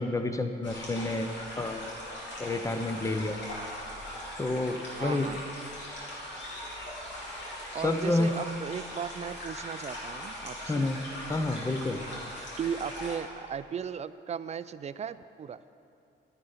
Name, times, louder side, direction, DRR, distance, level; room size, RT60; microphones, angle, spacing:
voice 1, 0.0-1.3 1.6-1.9 2.4-3.4 4.4-5.3 7.8-8.3 10.7-11.0 11.3-12.0, left 2 dB, 15° left, 7 dB, 0.8 m, -29 dB
sound 1, 0.6-13.2, left 1 dB, 65° left, 3.4 m, -40 dB
voice 2, 5.0-5.4 7.7-10.9 12.6-15.6, right 7 dB, 35° right, 14 dB, 0.4 m, -36 dB
10.5 x 9.9 x 5.6 m, 2.6 s
cardioid pair, 90°, 20 cm